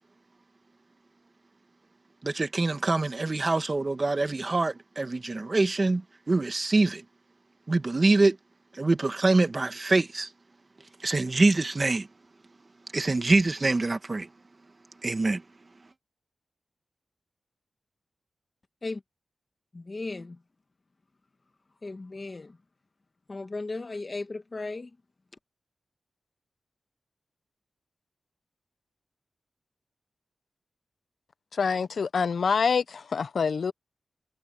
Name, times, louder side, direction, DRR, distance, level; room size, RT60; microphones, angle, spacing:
voice 1, 2.2-7.0 7.7-8.4 8.7-10.3 11.0-12.1 12.9-14.3 15.0-15.4, right 2 dB, 30° right, 1.8 m, -25 dB
voice 2, 19.7-20.4 21.8-22.6 23.3-25.0, left 3 dB, 30° left, 1.6 m, -36 dB
voice 3, 31.5-33.7, left 5 dB, 65° left, 0.6 m, -26 dB
wide cardioid pair, 155°, 0 cm